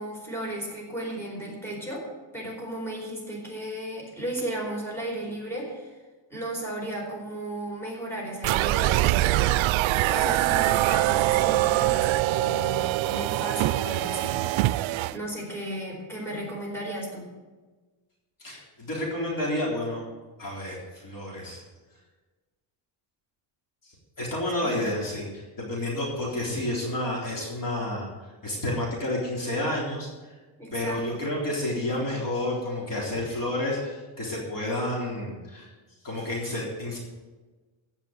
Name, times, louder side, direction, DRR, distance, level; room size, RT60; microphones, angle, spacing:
voice 1, 0.0-2.1 2.3-6.0 6.3-9.6 10.1-14.4 15.1-17.3 24.7-24.8 30.6-31.0, right 1 dB, 5° left, -3 dB, 4.6 m, -34 dB
sound 1, 8.4-15.2, right 16 dB, 75° right, 0.5 m, -23 dB
voice 2, 18.4-20.0 20.4-21.6 23.8-28.1 28.4-30.3 30.7-35.7 36.0-37.0, left 1 dB, 40° left, -4 dB, 3.8 m, -30 dB
16.0 x 5.9 x 7.9 m, 1.3 s
cardioid pair, 130°, 48 cm